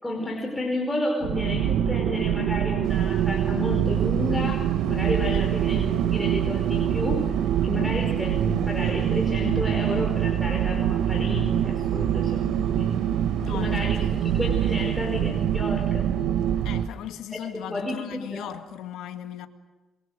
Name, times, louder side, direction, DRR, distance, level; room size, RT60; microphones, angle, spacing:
voice 1, 0.0-12.9 13.5-16.1 17.3-18.5, left 2 dB, 10° left, 4.9 m, -31 dB
sound 1, 1.2-16.9, right 10 dB, 90° right, 1.1 m, -24 dB
sound 2, 2.8-16.9, right 5 dB, 70° right, 3.9 m, -43 dB
voice 2, 13.4-14.2 16.6-19.5, left 10 dB, 90° left, 1.9 m, -38 dB
28.5 x 23.0 x 6.4 m
cardioid pair, 90°, 0 cm